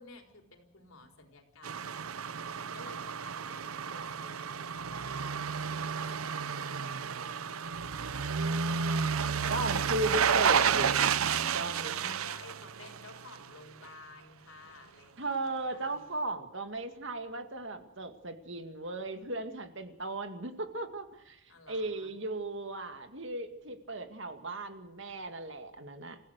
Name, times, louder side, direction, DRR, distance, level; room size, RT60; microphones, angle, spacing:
voice 1, 0.0-8.8 9.4-9.7 12.2-15.3 15.7-16.0 21.5-22.2, left 3 dB, 80° left, 3 dB, 4.3 m, -54 dB
sound 1, 1.6-13.5 13.8-13.9, right 6 dB, 90° right, 0.7 m, -31 dB
voice 2, 9.5-11.0 11.5-12.2 15.2-26.2, right 2 dB, 60° right, 7 dB, 2.3 m, -36 dB
27.0 x 16.0 x 6.6 m, 0.86 s
head